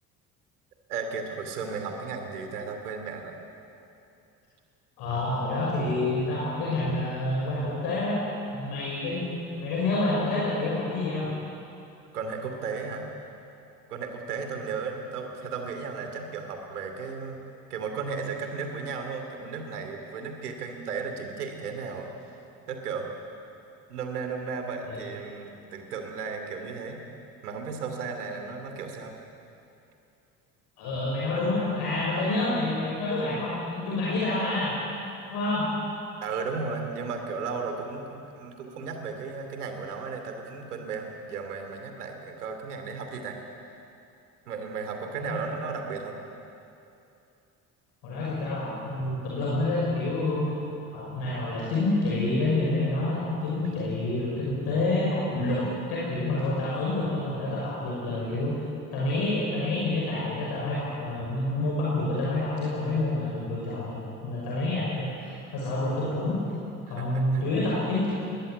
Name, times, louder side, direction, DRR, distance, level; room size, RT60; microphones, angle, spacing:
voice 1, 0.9-3.3 12.1-13.1 13.9-17.4 17.7-22.1 22.7-23.1 23.9-27.0 27.4-29.1 36.2-43.7 44.5-46.1 66.9-67.4, right 5 dB, 80° right, 4 dB, 2.9 m, -35 dB
voice 2, 5.0-8.2 8.5-11.3 24.9-25.0 30.8-34.7 35.3-35.7 45.2-45.4 48.0-50.5 50.9-55.6 55.9-58.5 58.9-66.4 66.9-68.1, left 2 dB, 60° left, -5 dB, 6.1 m, -28 dB
21.5 x 19.5 x 9.3 m, 2.7 s
figure-of-eight pair, 55°, 45 cm